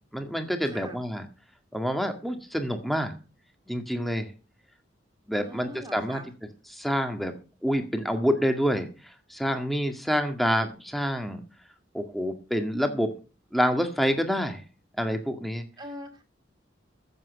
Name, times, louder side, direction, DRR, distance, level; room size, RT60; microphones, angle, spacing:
voice 1, 0.1-1.3 1.7-3.1 3.7-4.3 5.3-6.2 6.7-7.3 7.6-8.9 9.3-11.4 11.9-13.1 13.5-14.6 15.0-15.7, equal, ahead, 6 dB, 1.9 m, -27 dB
voice 2, 0.7-1.0 5.3-6.3 15.8-16.3, equal, 25° right, 5 dB, 2.5 m, -42 dB
14.5 x 7.8 x 6.4 m, 0.34 s
head